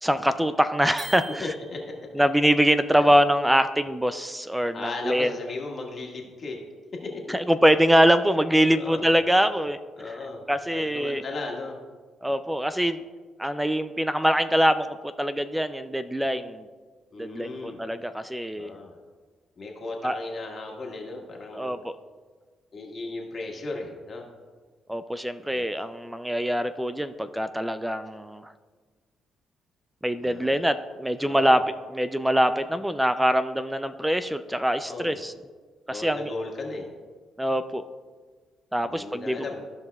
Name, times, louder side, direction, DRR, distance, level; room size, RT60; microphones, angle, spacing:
voice 1, 0.0-1.4 2.2-5.3 7.3-9.8 10.5-11.2 12.2-13.0 13.4-16.7 17.2-18.7 20.0-20.2 21.5-21.9 24.9-28.5 30.0-31.6 31.9-35.3 35.9-36.3 37.4-37.8 38.7-39.4, equal, 5° right, 11 dB, 0.3 m, -24 dB
sound 1, 1.0-2.1, right 2 dB, 65° right, 1.3 m, -41 dB
voice 2, 1.4-1.9 3.0-3.1 4.7-6.6 7.0-7.4 8.7-9.1 10.0-10.4 10.7-11.8 17.1-17.8 18.5-19.0 19.6-21.8 22.7-24.2 25.5-25.7 30.2-30.6 31.2-31.6 34.8-35.2 35.9-36.9 38.8-39.7, left 3 dB, 45° left, -1 dB, 1.6 m, -36 dB
14.5 x 5.4 x 2.3 m, 1.4 s
cardioid pair, 90°, 0 cm